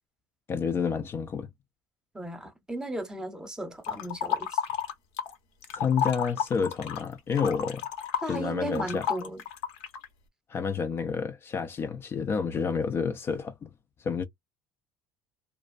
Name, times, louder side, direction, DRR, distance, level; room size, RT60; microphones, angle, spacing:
voice 1, 0.5-1.5 5.7-7.8 8.3-9.1 10.5-13.7 14.0-14.2, left 6 dB, 35° left, 0.4 m, -29 dB
voice 2, 2.1-4.6 8.2-9.4, right 1 dB, 10° right, 0.8 m, -35 dB
sound 1, 3.8-5.3 5.6-10.1, left 8 dB, 75° left, 0.8 m, -32 dB
2.4 x 2.0 x 2.5 m
supercardioid pair, 85°, 7 cm